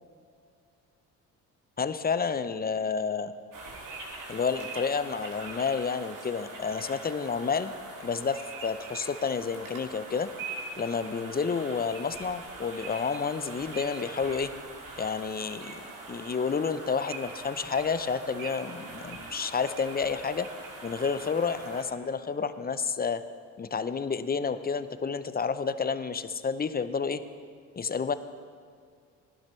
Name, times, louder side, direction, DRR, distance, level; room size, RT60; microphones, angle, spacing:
voice 1, 1.8-3.3 4.3-7.7 8.0-10.3 10.8-14.5 15.0-20.5 20.8-23.2 23.6-27.2 27.8-28.1, left 5 dB, 25° left, 12 dB, 0.7 m, -30 dB
sound 1, 3.5-21.8, right 3 dB, 55° right, 2.6 m, -42 dB
17.5 x 11.5 x 3.2 m, 2.2 s
hypercardioid pair, 60°, 39 cm